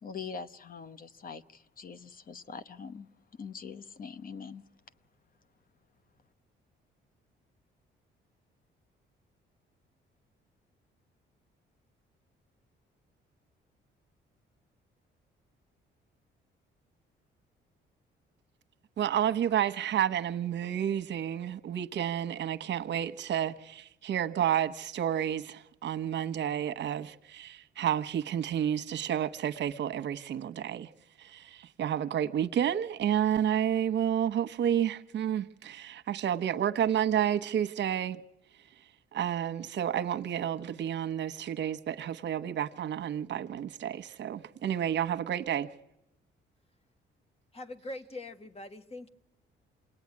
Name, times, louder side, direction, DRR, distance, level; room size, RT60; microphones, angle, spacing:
voice 1, 0.0-3.1 3.4-4.6, left 5 dB, 45° left, 1.0 m, -43 dB
voice 2, 19.0-30.9 31.2-38.2 39.1-45.7, right 10 dB, 65° right, 1.1 m, -30 dB
voice 3, 47.5-49.1, left 1 dB, 30° left, 1.6 m, -42 dB
27.0 x 19.0 x 9.7 m
cardioid pair, 90°, 20 cm